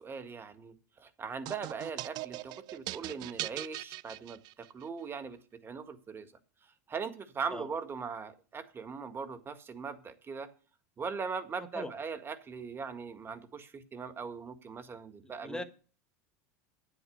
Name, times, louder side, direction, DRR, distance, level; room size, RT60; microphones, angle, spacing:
voice 1, 0.0-6.3 6.9-10.5 11.0-15.6, right 5 dB, 25° right, 11 dB, 1.7 m, -40 dB
sound 1, 1.5-4.8, right 18 dB, 50° right, 0.5 m, -41 dB
voice 2, 15.2-15.6, left 2 dB, 10° left, 9 dB, 1.5 m, -39 dB
9.4 x 8.2 x 6.5 m, 0.38 s
supercardioid pair, 105°, 9 cm